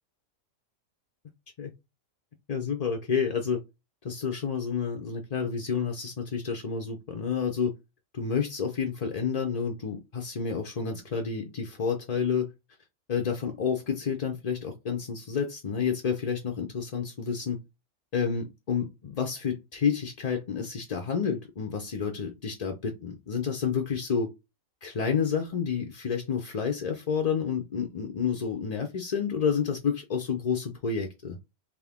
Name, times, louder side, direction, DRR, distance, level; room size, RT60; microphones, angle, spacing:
voice 1, 2.5-3.6 4.0-7.7 8.1-12.5 13.1-17.6 18.1-24.3 24.8-31.4, left 6 dB, 50° left, 0.5 m, -29 dB
3.7 x 2.8 x 3.5 m
omnidirectional pair, 1.4 m